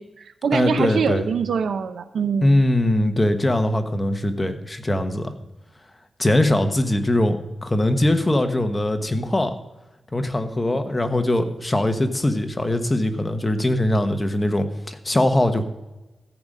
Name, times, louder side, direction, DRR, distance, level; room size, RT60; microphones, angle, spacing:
voice 1, 0.0-2.6, right 6 dB, 90° right, 10 dB, 0.8 m, -24 dB
voice 2, 0.5-1.3 2.4-5.3 6.2-9.5 10.1-15.6, left 1 dB, 20° left, 7 dB, 1.2 m, -21 dB
14.0 x 5.2 x 7.5 m, 1.0 s
cardioid pair, 80°, 0 cm